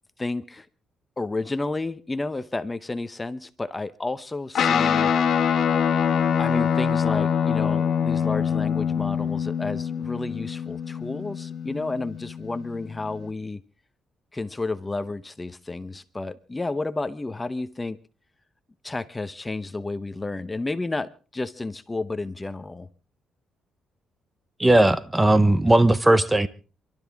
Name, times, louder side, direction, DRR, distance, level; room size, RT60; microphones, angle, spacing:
voice 1, 0.2-0.7 1.2-5.1 6.4-13.6 14.3-18.0 18.8-22.9, left 2 dB, 20° left, 0.9 m, -31 dB
Guitar, 4.5-13.3, left 7 dB, 60° left, 1.8 m, -24 dB
voice 2, 24.6-26.5, right 1 dB, 10° right, 0.8 m, -18 dB
28.0 x 12.5 x 3.5 m
cardioid pair, 90°, 0 cm